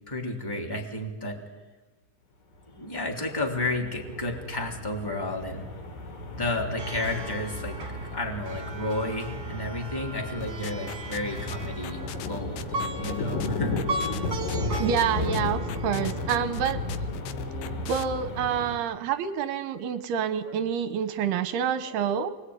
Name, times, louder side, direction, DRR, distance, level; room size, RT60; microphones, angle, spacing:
voice 1, 0.1-1.4 2.7-5.7 6.3-14.2 20.5-20.6, left 2 dB, 5° left, 0 dB, 2.3 m, -32 dB
sound 1, 2.9-18.8, left 2 dB, 50° left, 3.5 m, -34 dB
Plucked string instrument, 6.8-17.1, right 2 dB, 35° right, 2.0 m, -38 dB
sound 2, 10.4-18.0, left 11 dB, 75° left, 2.5 m, -40 dB
voice 2, 14.8-16.8 17.9-22.3, right 8 dB, 75° right, 11 dB, 2.5 m, -27 dB
27.0 x 20.0 x 9.8 m, 1.2 s
omnidirectional pair, 5.7 m